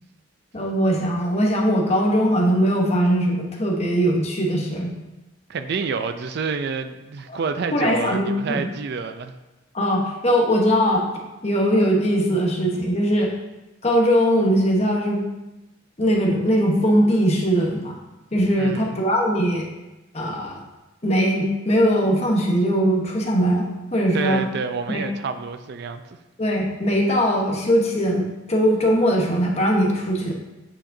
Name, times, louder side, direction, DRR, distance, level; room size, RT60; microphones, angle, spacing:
voice 1, 0.5-4.9 7.3-7.4 7.7-8.6 9.7-11.1 11.4-13.3 13.8-15.2 16.0-18.0 18.3-19.7 20.1-20.6 21.0-24.5 24.9-25.0 26.4-30.3, equal, 35° left, 0 dB, 1.0 m, -20 dB
voice 2, 5.5-9.3 18.6-19.0 24.1-26.0, right 5 dB, 55° right, 10 dB, 0.4 m, -28 dB
8.6 x 4.9 x 2.6 m, 1.0 s
head